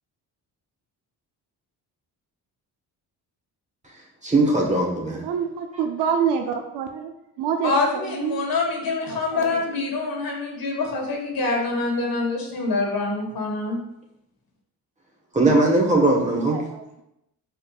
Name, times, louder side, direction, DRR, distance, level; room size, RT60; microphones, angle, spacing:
voice 1, 4.2-5.2 15.3-16.6, right 2 dB, 20° right, 0 dB, 1.2 m, -19 dB
voice 2, 5.2-8.4 9.0-9.7 16.0-17.0, right 7 dB, 90° right, 5 dB, 0.6 m, -28 dB
voice 3, 7.6-13.8, left 3 dB, 60° left, -1 dB, 1.6 m, -25 dB
5.0 x 4.5 x 2.4 m, 0.83 s
cardioid pair, 85°, 40 cm